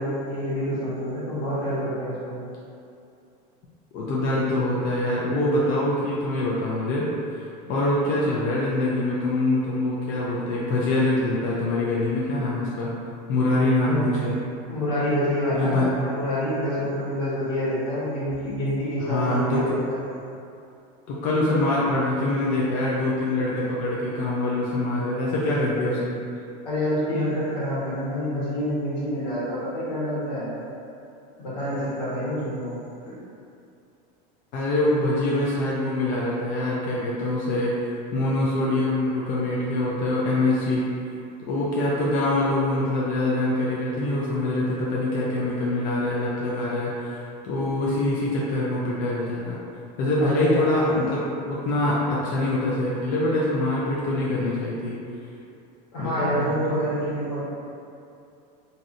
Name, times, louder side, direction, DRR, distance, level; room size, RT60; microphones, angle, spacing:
voice 1, 0.0-2.4 13.8-14.2 14.7-20.1 26.6-30.5 31.4-32.8 33.1-33.2 50.2-50.9 55.9-57.4, equal, 75° left, -10 dB, 1.5 m, -27 dB
voice 2, 3.9-7.1 7.3-12.9 13.3-14.3 15.5-15.9 19.0-19.6 21.1-26.1 34.5-40.8 41.5-49.6 50.0-54.9 56.0-56.5, left 1 dB, 40° left, -6 dB, 0.4 m, -24 dB
3.0 x 2.7 x 2.5 m, 2.6 s
supercardioid pair, 160°, 21 cm